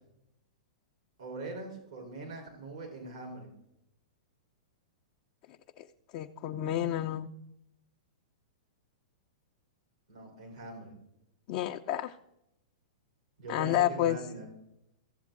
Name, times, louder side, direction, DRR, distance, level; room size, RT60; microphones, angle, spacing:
voice 1, 1.2-3.5 10.1-10.9 13.4-14.5, right 2 dB, 80° right, 1 dB, 3.9 m, -42 dB
voice 2, 6.1-7.3 11.5-12.1 13.5-14.2, left 12 dB, 45° left, 3 dB, 0.5 m, -30 dB
15.0 x 7.3 x 3.9 m, 0.83 s
hypercardioid pair, 120°, 4 cm